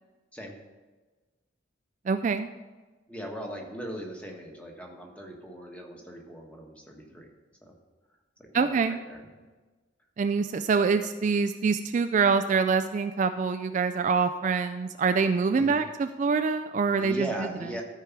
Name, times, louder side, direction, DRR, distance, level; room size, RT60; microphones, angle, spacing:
voice 1, 2.1-2.5 8.5-9.0 10.2-17.5, right 5 dB, 40° right, 8 dB, 0.3 m, -25 dB
voice 2, 3.1-7.3 7.6-7.7 8.4-9.2 15.5-15.8 17.0-17.8, right 1 dB, 5° left, 1 dB, 1.3 m, -39 dB
13.5 x 4.7 x 5.8 m, 1.3 s
head